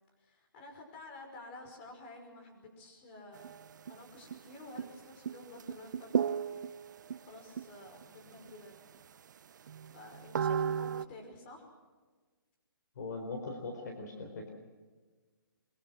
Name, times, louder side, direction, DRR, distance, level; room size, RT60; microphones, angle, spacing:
voice 1, 0.2-3.5 3.9-6.5 6.8-8.8 9.5-11.7, left 2 dB, 30° left, 3 dB, 5.5 m, -51 dB
sound 1, 3.3-4.0 4.3-4.4 4.8-5.0 5.3-7.2 7.6-8.0 8.5-8.6 8.9-9.0 9.7-11.1, right 7 dB, 55° right, 0.6 m, -34 dB
voice 2, 13.0-14.5, left 3 dB, 50° left, 4 dB, 4.3 m, -40 dB
23.5 x 23.5 x 6.3 m, 1.4 s
hypercardioid pair, 160°, 12 cm